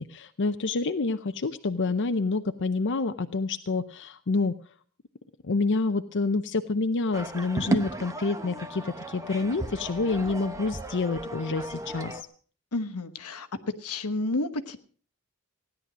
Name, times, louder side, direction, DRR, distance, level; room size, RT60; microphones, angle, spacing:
voice 1, 0.0-4.6 5.4-12.3, left 3 dB, 55° left, 9 dB, 0.7 m, -28 dB
sound 1, 7.1-12.2, right 1 dB, 15° right, 1.0 m, -33 dB
voice 2, 12.7-13.5 13.8-14.8, left 2 dB, 85° left, 9 dB, 1.2 m, -30 dB
16.5 x 10.5 x 6.1 m, 0.44 s
head